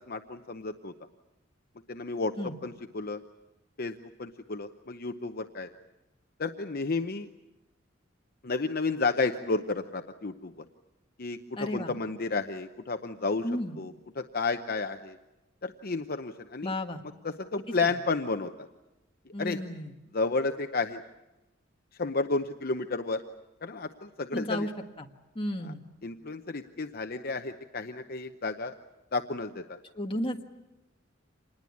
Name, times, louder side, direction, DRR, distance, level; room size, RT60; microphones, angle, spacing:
voice 1, 0.1-0.9 1.9-2.3 2.6-3.2 3.8-5.7 6.4-7.3 8.4-10.6 11.2-13.5 13.8-15.2 15.6-16.7 17.2-18.7 19.3-19.6 20.1-21.0 22.0-23.2 23.6-24.7 25.6-25.7 26.0-28.7 29.1-29.8, left 3 dB, 50° left, 7 dB, 0.8 m, -32 dB
voice 2, 11.6-11.9 13.4-13.8 16.6-17.0 17.8-17.9 19.3-19.9 24.3-24.7 25.0-25.1 25.4-25.8 30.0-30.5, left 1 dB, 25° left, 3 dB, 1.6 m, -33 dB
27.0 x 20.5 x 8.5 m, 1.0 s
head